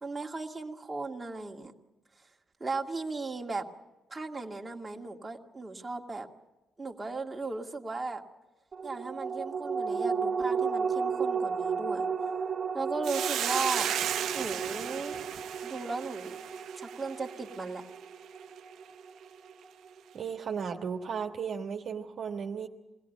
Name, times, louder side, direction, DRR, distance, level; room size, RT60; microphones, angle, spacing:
voice 1, 0.0-1.7 2.6-3.6 4.1-6.3 6.8-8.2 8.8-12.1 12.7-13.9 14.3-15.2 15.6-16.4 16.7-17.8, right 3 dB, 20° right, 1 dB, 2.0 m, -36 dB
sound 1, 8.7-19.5 19.9-20.0, right 5 dB, 40° right, 1.1 m, -34 dB
Hiss, 13.0-17.5, right 10 dB, 80° right, 0.9 m, -34 dB
voice 2, 20.1-22.7, right 6 dB, 55° right, 2 dB, 1.5 m, -35 dB
23.0 x 16.5 x 9.2 m, 1.0 s
cardioid pair, 90°, 0 cm